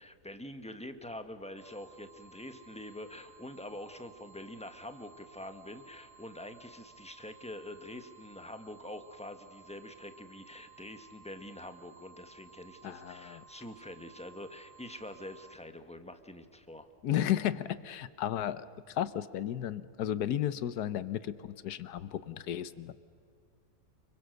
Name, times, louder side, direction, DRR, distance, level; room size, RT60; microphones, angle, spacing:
voice 1, 0.0-16.9, left 1 dB, 5° left, 8 dB, 1.2 m, -45 dB
sound 1, 1.6-15.6, right 6 dB, 25° left, 2.3 m, -57 dB
voice 2, 12.8-13.4 17.0-22.9, left 11 dB, 80° left, 14 dB, 1.4 m, -34 dB
29.5 x 22.5 x 6.6 m, 2.2 s
omnidirectional pair, 1.7 m